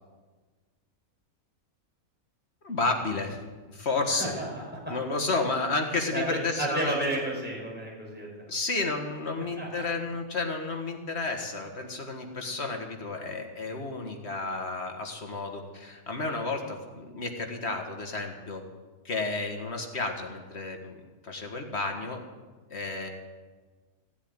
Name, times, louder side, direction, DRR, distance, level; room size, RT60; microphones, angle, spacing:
voice 1, 2.6-3.4 3.7-4.3 4.9-6.9 8.5-18.6 19.0-21.0 21.2-22.2 22.7-23.1, left 3 dB, 45° left, 4 dB, 1.8 m, -31 dB
voice 2, 4.1-4.9 6.1-8.3 9.6-9.7, right 1 dB, 5° right, -4 dB, 5.6 m, -32 dB
16.0 x 8.3 x 9.6 m, 1.4 s
omnidirectional pair, 1.6 m